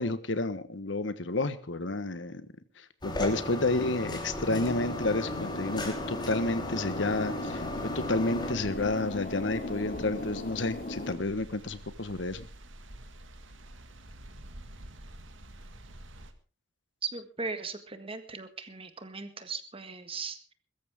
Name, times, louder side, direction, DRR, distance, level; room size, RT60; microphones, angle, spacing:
voice 1, 0.0-2.5 2.8-12.5, left 2 dB, 75° left, 12 dB, 1.3 m, -30 dB
sound 1, 3.0-8.5, left 1 dB, 25° left, 3.6 m, -36 dB
sound 2, 4.5-11.1, left 2 dB, 45° left, 3.2 m, -38 dB
sound 3, 8.5-16.3, right 1 dB, 85° right, 1.9 m, -48 dB
voice 2, 17.0-20.5, right 4 dB, 30° right, 9 dB, 1.7 m, -38 dB
22.0 x 14.0 x 3.6 m, 0.34 s
head